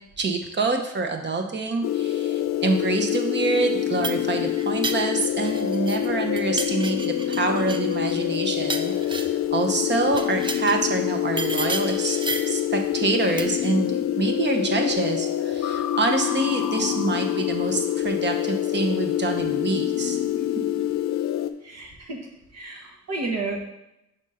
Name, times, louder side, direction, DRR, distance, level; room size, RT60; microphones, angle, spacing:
voice 1, 0.2-12.2 12.5-20.2, right 3 dB, 40° right, 4 dB, 0.8 m, -26 dB
sound 1, 1.8-21.5, left 11 dB, 65° left, 0.5 m, -26 dB
sound 2, 3.7-6.1 6.4-9.5 10.1-10.8 11.4-12.6 13.4-13.7, right 3 dB, 15° right, 0.4 m, -33 dB
voice 2, 21.6-22.2 22.5-23.6, right 3 dB, 60° right, 1 dB, 1.4 m, -31 dB
5.3 x 3.7 x 5.5 m, 0.87 s
cardioid pair, 125°, 29 cm